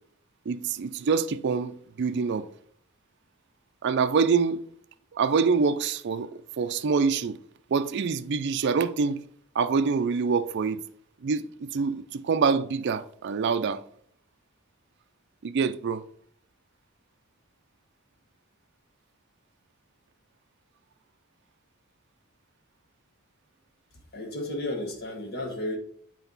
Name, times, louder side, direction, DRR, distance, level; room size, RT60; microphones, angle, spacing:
voice 1, 0.5-2.5 3.8-4.6 5.1-6.3 6.6-7.4 7.7-9.2 9.5-10.8 11.2-13.8 15.4-16.0, right 5 dB, 55° right, 0.4 m, -25 dB
voice 2, 24.1-25.8, left 1 dB, 50° left, 1.4 m, -33 dB
8.0 x 4.6 x 4.0 m
head